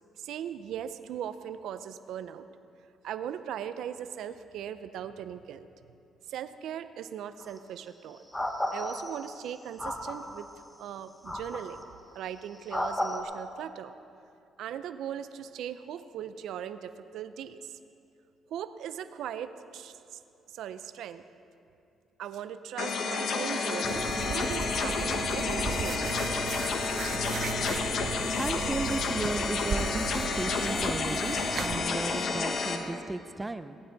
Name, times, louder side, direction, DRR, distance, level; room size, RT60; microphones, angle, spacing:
voice 1, 0.2-2.6 3.0-5.7 6.3-8.3 8.7-10.5 10.8-11.8 12.1-13.9 14.6-17.8 18.5-20.2 20.5-21.2 22.2-26.2, right 9 dB, 80° right, 12 dB, 0.5 m, -39 dB
sound 1, 7.4-7.6 8.3-9.4 9.8-10.4 11.3-11.8 12.7-13.2, left 1 dB, 10° left, 1.3 m, -33 dB
sound 2, 22.8-32.8, left 4 dB, 65° left, 1.3 m, -30 dB
sound 3, 23.8-31.8, right 6 dB, 60° right, 0.9 m, -36 dB
voice 2, 28.4-33.8, right 2 dB, 20° right, 11 dB, 0.6 m, -35 dB
18.0 x 13.0 x 4.0 m, 2.6 s
cardioid pair, 90°, 0 cm